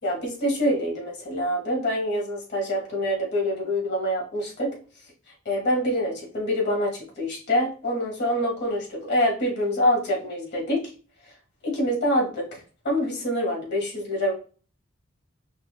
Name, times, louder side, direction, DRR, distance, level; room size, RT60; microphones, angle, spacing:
voice 1, 0.0-4.7 5.4-10.8 11.6-14.3, equal, 60° left, -1 dB, 1.6 m, -25 dB
5.7 x 2.1 x 2.2 m, 0.38 s
head